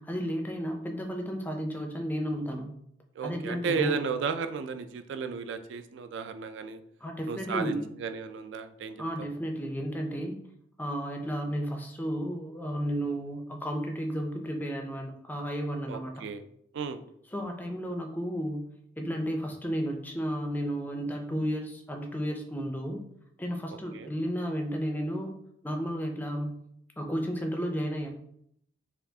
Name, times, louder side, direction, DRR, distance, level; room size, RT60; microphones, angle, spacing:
voice 1, 0.0-2.7 3.2-4.0 7.0-7.9 9.0-10.4 10.8-16.3 17.3-18.7 19.0-23.0 23.4-25.3 25.6-26.6 27.0-28.1, equal, 10° left, 3 dB, 0.4 m, -33 dB
voice 2, 3.2-6.8 7.3-7.7 8.0-9.0 15.9-16.4 16.7-17.0 23.7-24.1, right 5 dB, 70° right, 9 dB, 0.3 m, -33 dB
4.2 x 2.4 x 2.7 m, 0.72 s
head